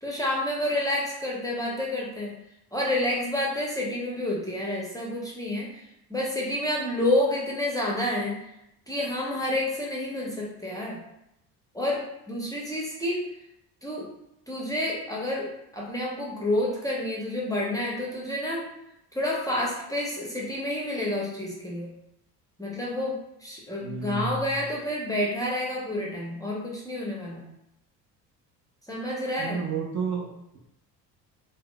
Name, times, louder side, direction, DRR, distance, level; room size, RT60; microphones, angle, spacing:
voice 1, 0.0-2.3 2.7-5.8 6.1-8.4 8.9-11.0 11.7-13.2 13.8-14.1 14.5-18.7 19.1-21.9 22.6-27.5 28.9-29.6, left 1 dB, 10° left, -4 dB, 0.6 m, -29 dB
voice 2, 23.8-24.4 29.4-30.6, right 5 dB, 40° right, 0 dB, 0.7 m, -31 dB
3.7 x 2.0 x 2.2 m, 0.82 s
hypercardioid pair, 60°, 47 cm